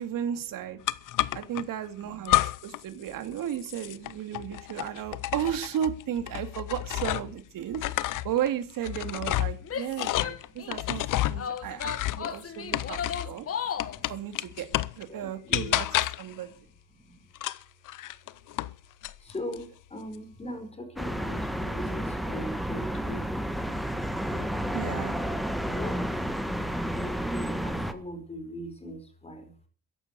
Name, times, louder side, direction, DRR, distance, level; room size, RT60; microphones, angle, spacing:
voice 1, 0.0-0.8 1.3-13.0 13.2-13.5 14.1-14.7 15.0-15.9 16.2-16.5 24.7-25.2, right 10 dB, 70° right, 9 dB, 2.7 m, -34 dB
voice 2, 0.7-1.5 2.0-3.5 3.8-5.3 9.1-13.7 13.9-14.2 14.9-15.9 16.2-17.3 18.2-23.9 24.2-24.8 25.4-26.2 26.8-29.6, left 1 dB, 20° left, 7 dB, 4.5 m, -44 dB
sound 1, 0.9-1.6 2.2-2.8 3.1-7.4 7.7-13.4 13.8-15.0 15.5-16.3 17.3-18.7 19.0-19.6, left 15 dB, 65° left, 0.8 m, -30 dB
Female speech woman speaking / Yell, 9.6-10.9 11.4-14.0, left 7 dB, 40° left, 1.4 m, -35 dB
sound 2, 21.0-27.9, equal, ahead, 1.5 m, -31 dB
14.5 x 11.0 x 8.2 m, 0.42 s
cardioid pair, 130°, 34 cm